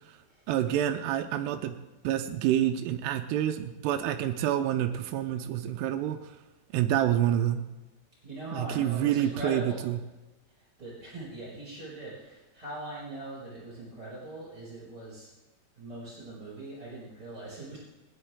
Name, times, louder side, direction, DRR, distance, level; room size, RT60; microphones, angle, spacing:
voice 1, 0.5-1.7 2.0-6.3 6.7-7.6 8.5-10.0, right 11 dB, 85° right, 7 dB, 2.4 m, -28 dB
voice 2, 8.2-9.8 10.6-15.3 15.8-17.8, right 2 dB, 10° right, -7 dB, 5.7 m, -41 dB
20.0 x 10.5 x 3.7 m, 1.1 s
omnidirectional pair, 5.6 m